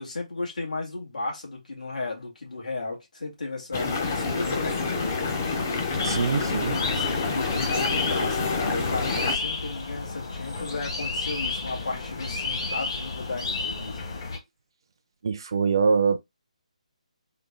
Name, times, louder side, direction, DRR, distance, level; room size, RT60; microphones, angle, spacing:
voice 1, 0.0-4.8 6.9-14.0, left 3 dB, 75° left, 2.0 m, -34 dB
sound 1, 3.7-9.4, left 4 dB, 20° left, 0.5 m, -27 dB
sound 2, 6.0-14.4, left 3 dB, 40° left, 1.0 m, -32 dB
voice 2, 6.0-6.8 8.2-8.3 8.6-8.7 15.2-16.2, right 5 dB, 35° right, 0.4 m, -24 dB
3.8 x 2.2 x 3.6 m
hypercardioid pair, 175°, 4 cm